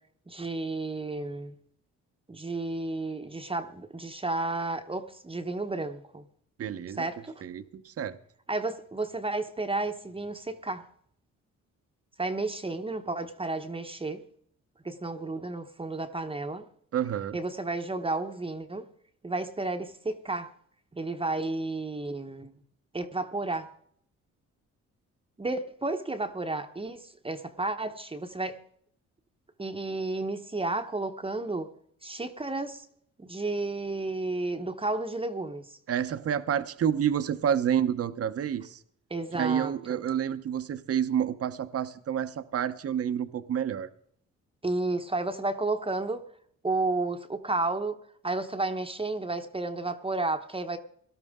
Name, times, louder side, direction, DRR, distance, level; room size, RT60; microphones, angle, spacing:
voice 1, 0.3-1.5 2.3-6.2 7.0-7.4 8.5-10.8 12.2-14.2 14.8-16.6 17.3-18.9 19.2-20.5 20.9-22.6 22.9-23.7 25.4-28.6 29.6-31.7 32.0-32.9 33.2-35.8 39.1-40.0 44.6-46.2 46.6-48.0 48.2-50.8, right 2 dB, 20° right, 6 dB, 1.0 m, -32 dB
voice 2, 6.6-7.1 7.4-8.2 16.9-17.4 35.9-38.8 39.3-43.9, right 9 dB, 50° right, 12 dB, 0.9 m, -29 dB
18.0 x 12.5 x 3.7 m, 0.64 s
cardioid pair, 90°, 30 cm